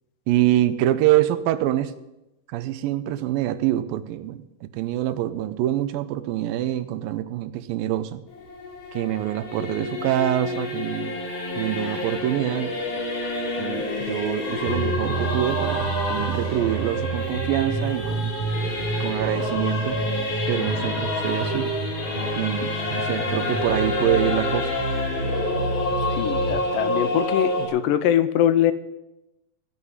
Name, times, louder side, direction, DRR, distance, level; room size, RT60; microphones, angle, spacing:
voice 1, 0.3-1.9 2.5-8.2 8.9-11.1 11.6-12.7 13.6-18.4 19.0-20.0 20.5-21.7 22.4-24.7, right 13 dB, 85° right, 13 dB, 2.5 m, -25 dB
Singing / Musical instrument, 8.3-27.7, left 1 dB, 60° left, 3.8 m, -28 dB
sound 1, 14.7-26.6, right 3 dB, 60° right, 1.8 m, -30 dB
voice 2, 26.1-28.7, left 11 dB, 80° left, 13 dB, 2.2 m, -22 dB
15.5 x 5.7 x 9.5 m, 0.92 s
omnidirectional pair, 4.0 m